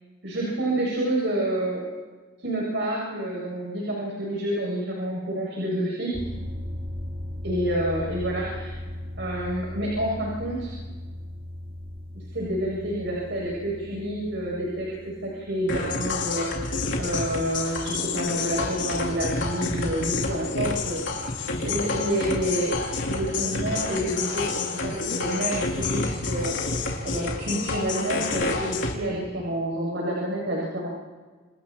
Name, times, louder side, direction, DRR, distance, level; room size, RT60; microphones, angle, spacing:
voice 1, 0.2-1.8 2.4-6.1 7.4-8.8 9.2-10.7 12.3-21.2 21.6-22.7 23.1-30.9, right 1 dB, 65° right, -3 dB, 7.3 m, -28 dB
sound 1, 6.1-16.9, left 1 dB, 30° right, 2.6 m, -37 dB
sound 2, 15.7-28.9, left 3 dB, 70° left, 4.3 m, -29 dB
29.5 x 29.0 x 4.5 m, 1.3 s
head